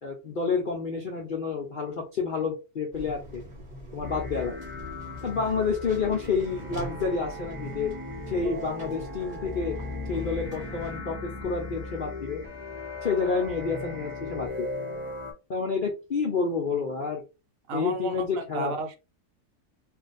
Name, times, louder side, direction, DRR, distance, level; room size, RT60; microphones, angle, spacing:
voice 1, 0.0-3.4 3.9-4.6 5.2-7.9 8.3-9.8 10.1-12.4 13.0-14.5 15.5-17.2 17.7-18.7, left 5 dB, 60° left, -1 dB, 0.5 m, -29 dB
sound 1, 2.9-11.0, equal, 35° right, 0.9 m, -43 dB
sound 2, 4.0-15.3, left 2 dB, 10° right, 0.7 m, -37 dB
voice 2, 17.7-19.0, right 3 dB, 70° right, 6 dB, 1.0 m, -32 dB
2.5 x 2.2 x 4.0 m, 0.29 s
omnidirectional pair, 1.6 m